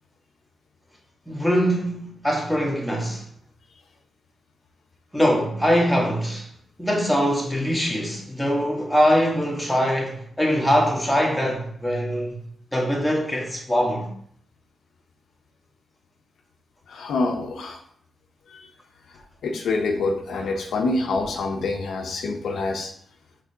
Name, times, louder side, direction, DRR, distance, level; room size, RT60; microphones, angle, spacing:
voice 1, 1.3-3.2 5.1-6.5 6.8-12.4 12.7-14.1, equal, 5° left, 1.3 m, -22 dB
voice 2, 16.9-17.8 18.5-18.6 19.4-22.9, left 3 dB, 80° left, 0.5 m, -26 dB
4.9 x 3.3 x 2.7 m
cardioid pair, 60°, 0 cm